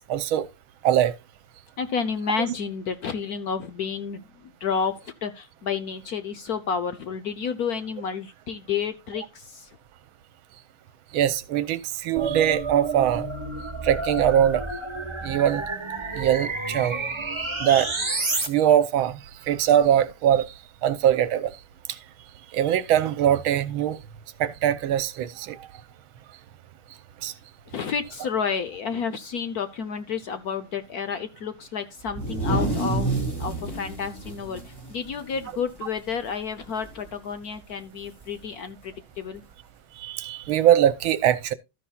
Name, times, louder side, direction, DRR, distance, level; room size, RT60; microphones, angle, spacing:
voice 1, 0.1-0.5 0.8-1.1 11.1-13.3 13.8-14.7 15.2-15.6 16.1-17.0 17.6-17.9 18.5-20.5 20.8-21.5 21.9-22.0 22.5-24.0 24.4-25.6 27.2-27.3 40.0-41.5, right 10 dB, 80° right, 1.6 m, -22 dB
voice 2, 1.8-9.8 27.7-33.1 33.4-39.4, left 6 dB, 60° left, 1.1 m, -30 dB
sound 1, 12.2-18.5, right 3 dB, 15° right, 1.1 m, -30 dB
sound 2, 32.0-35.8 36.1-36.3 36.6-37.1 38.2-38.3 39.3-39.4, right 2 dB, 10° left, 3.3 m, -29 dB
13.0 x 10.0 x 2.4 m
omnidirectional pair, 2.3 m